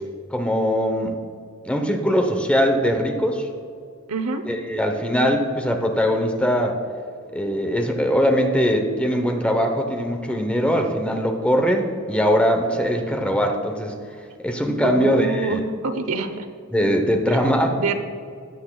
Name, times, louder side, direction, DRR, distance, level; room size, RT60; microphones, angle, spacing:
voice 1, 0.3-1.1 1.6-3.5 4.5-6.8 7.3-13.9 14.4-15.6 16.7-17.8, equal, 5° left, 4 dB, 0.8 m, -21 dB
voice 2, 4.1-4.5 14.8-16.5 17.7-17.9, right 4 dB, 80° right, 8 dB, 0.8 m, -26 dB
16.0 x 9.6 x 2.3 m, 2.3 s
head